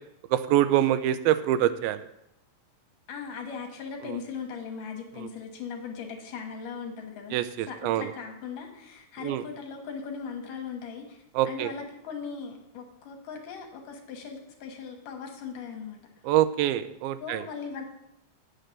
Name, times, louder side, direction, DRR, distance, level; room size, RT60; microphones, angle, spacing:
voice 1, 0.3-2.1 4.1-4.2 5.2-5.3 7.3-8.1 9.2-9.4 11.3-11.7 16.2-17.4, right 12 dB, 85° right, 11 dB, 2.4 m, -25 dB
voice 2, 3.1-7.4 7.7-16.0 17.2-17.8, left 6 dB, 70° left, 3 dB, 2.8 m, -39 dB
8.9 x 6.5 x 6.7 m, 0.84 s
omnidirectional pair, 4.2 m